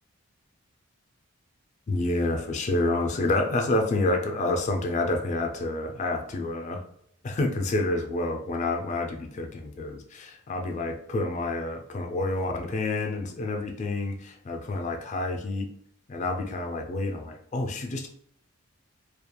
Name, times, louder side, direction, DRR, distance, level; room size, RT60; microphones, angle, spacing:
voice 1, 1.9-6.9 7.2-15.7 16.1-18.1, left 2 dB, 35° left, 3 dB, 0.3 m, -28 dB
2.9 x 2.3 x 2.2 m, 0.66 s
head